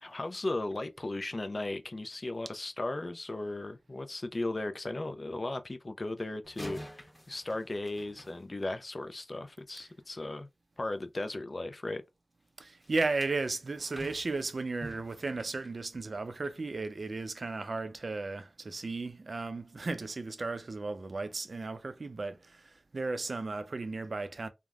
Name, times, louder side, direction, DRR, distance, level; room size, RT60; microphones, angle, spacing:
voice 1, 0.0-10.5 10.8-12.0, left 2 dB, 50° left, 0.4 m, -36 dB
sound 1, 6.4-9.0 12.8-16.6 17.0-17.2 17.8-17.9, equal, 10° left, 0.8 m, -48 dB
voice 2, 12.6-24.5, right 3 dB, 70° right, 0.4 m, -35 dB
3.4 x 2.0 x 2.3 m
cardioid pair, 45°, 0 cm